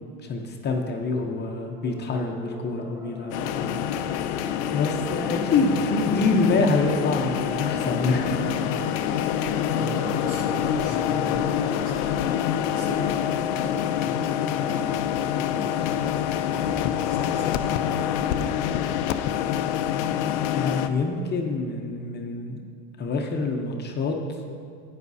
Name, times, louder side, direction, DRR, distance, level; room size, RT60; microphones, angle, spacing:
voice 1, 0.2-3.8 4.7-8.4 20.5-22.6 23.0-24.2, left 3 dB, 30° left, 2 dB, 0.9 m, -26 dB
sound 1, 0.9-15.4, right 2 dB, 10° right, 0.5 m, -41 dB
voice 2, 1.1-1.4 5.5-6.2 9.6-12.0 12.7-15.0 15.3-17.6 18.5-19.0, right 2 dB, 60° right, -1 dB, 2.1 m, -40 dB
sound 2, 3.3-20.9, left 9 dB, 75° left, 0.6 m, -26 dB
12.0 x 9.2 x 2.8 m, 2.3 s
supercardioid pair, 120°, 35 cm